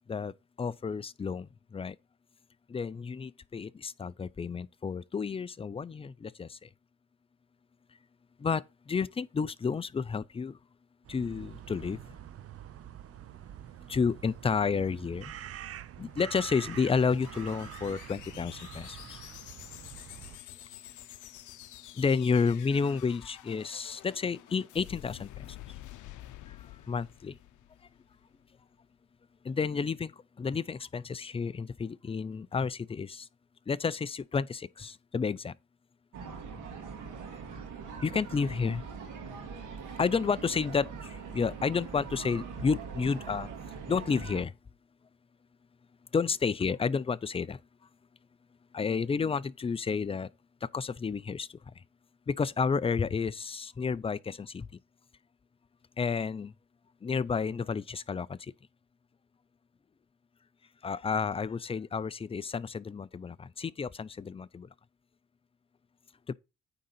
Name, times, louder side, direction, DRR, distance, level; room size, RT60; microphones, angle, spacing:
voice 1, 0.6-1.5 1.7-1.9 2.7-6.5 8.4-8.6 8.9-10.5 11.1-12.0 13.9-15.3 16.0-19.0 22.0-25.3 26.9-27.3 29.5-30.1 30.4-33.2 33.7-35.5 38.0-38.8 39.5-39.6 40.0-40.9 41.3-43.5 43.9-44.5 46.1-47.6 48.7-50.3 50.7-51.5 52.3-54.7 56.0-56.5 57.0-58.4 60.8-64.7 66.3-66.4, left 5 dB, 20° left, 0.4 m, -31 dB
sound 1, 11.0-20.4, right 11 dB, 50° right, 0.6 m, -46 dB
sound 2, 16.0-28.4, left 14 dB, 75° left, 0.7 m, -49 dB
sound 3, 36.1-44.4, right 5 dB, 85° right, 2.4 m, -42 dB
9.2 x 3.9 x 5.6 m
cardioid pair, 90°, 30 cm